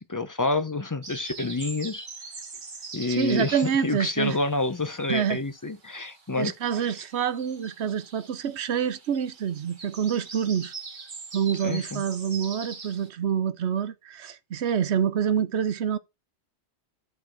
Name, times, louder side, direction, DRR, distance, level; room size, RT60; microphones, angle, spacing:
voice 1, 0.1-2.1 2.9-7.0 11.6-12.0, left 2 dB, 25° left, 0.4 m, -28 dB
sound 1, 1.0-5.4 5.6-13.1, right 4 dB, 45° right, 1.3 m, -43 dB
voice 2, 3.2-4.3 5.1-5.4 6.4-10.7 11.3-16.0, right 8 dB, 75° right, 1.0 m, -27 dB
10.5 x 4.4 x 4.4 m
omnidirectional pair, 1.1 m